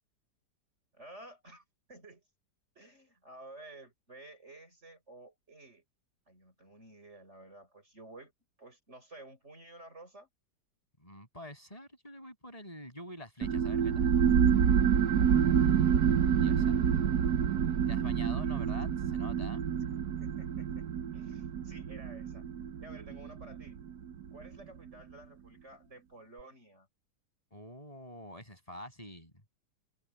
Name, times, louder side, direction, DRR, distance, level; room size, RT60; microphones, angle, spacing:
voice 1, 0.9-2.2 2.8-5.8 6.3-8.3 8.6-10.3 18.4-18.5 19.8-19.9 20.2-20.9 21.1-22.4 22.8-23.8 24.3-26.9, right 2 dB, 40° right, 7.0 m, -52 dB
voice 2, 11.0-14.1 16.4-17.1 17.9-19.6 27.5-29.3, left 1 dB, 20° left, 7.4 m, -47 dB
sound 1, 13.4-24.5, right 8 dB, 65° right, 1.5 m, -28 dB
open air
omnidirectional pair, 1.9 m